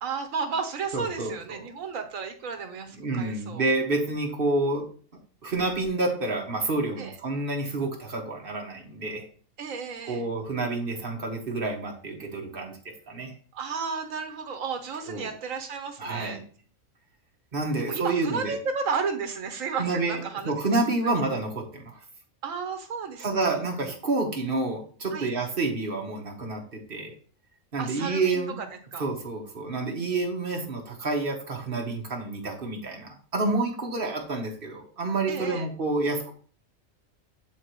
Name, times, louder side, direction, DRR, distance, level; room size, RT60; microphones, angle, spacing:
voice 1, 0.0-3.7 7.0-7.2 9.6-10.3 13.5-16.4 17.8-20.5 22.4-23.5 25.1-25.3 27.8-29.1 35.3-35.7, right 5 dB, 70° right, 6 dB, 1.3 m, -33 dB
voice 2, 0.9-1.6 2.9-4.8 5.4-9.2 10.1-12.8 13.1-13.3 15.1-15.3 16.0-16.4 17.5-18.5 19.8-22.0 23.2-27.1 27.7-28.5 29.0-36.3, right 3 dB, 40° right, 2 dB, 1.4 m, -29 dB
8.9 x 4.0 x 3.0 m, 0.43 s
omnidirectional pair, 1.4 m